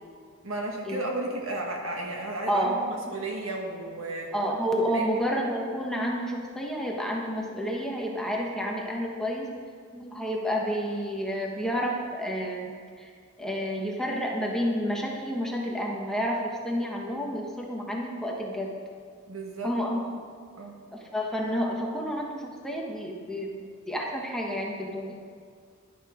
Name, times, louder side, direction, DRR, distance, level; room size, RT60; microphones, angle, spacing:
voice 1, 0.4-4.3 4.9-5.1 13.4-13.5 19.3-19.7 20.6-20.8, right 2 dB, 75° right, 1 dB, 1.9 m, -34 dB
voice 2, 4.3-9.5 9.9-13.1 13.4-18.8 19.6-20.0 20.9-25.2, equal, 5° left, -2 dB, 1.3 m, -30 dB
11.5 x 10.0 x 5.1 m, 2.1 s
head